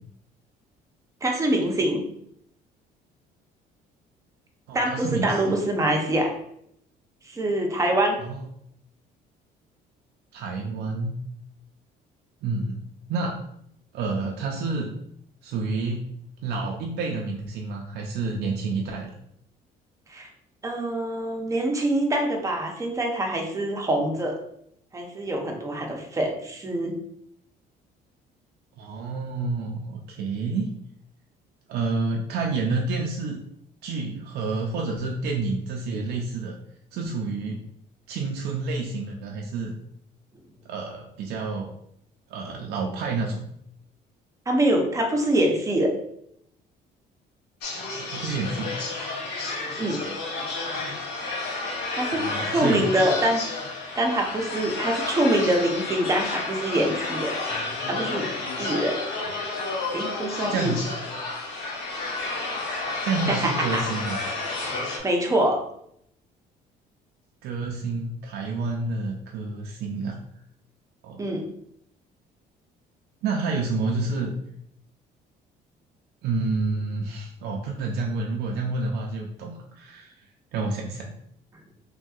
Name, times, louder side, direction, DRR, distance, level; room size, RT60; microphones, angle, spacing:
voice 1, 1.2-2.0 4.7-6.3 7.3-8.2 20.1-20.3 20.6-24.4 24.9-27.0 44.5-45.9 49.8-50.0 51.9-53.4 54.0-57.3 57.9-58.3 58.6-59.0 59.9-60.7 63.3-63.9 64.8-65.6 71.2-71.5, right 1 dB, 20° right, 2 dB, 0.6 m, -25 dB
voice 2, 4.7-5.4 8.2-8.4 10.3-11.2 12.4-12.8 13.1-13.4 13.9-14.9 15.4-16.1 16.4-19.1 28.8-30.7 31.7-33.4 33.8-36.6 36.9-37.6 38.1-39.8 40.7-41.7 42.3-43.4 47.7-48.7 52.1-52.8 59.2-59.3 60.5-60.9 63.0-64.2 67.4-70.2 71.0-71.2 73.2-74.3 76.2-80.2 80.5-81.1, right 3 dB, 70° right, 0 dB, 0.4 m, -29 dB
sound 1, 47.6-65.0, left 3 dB, 80° left, 0.8 m, -31 dB
3.2 x 2.6 x 2.3 m, 0.72 s
cardioid pair, 110°, 17 cm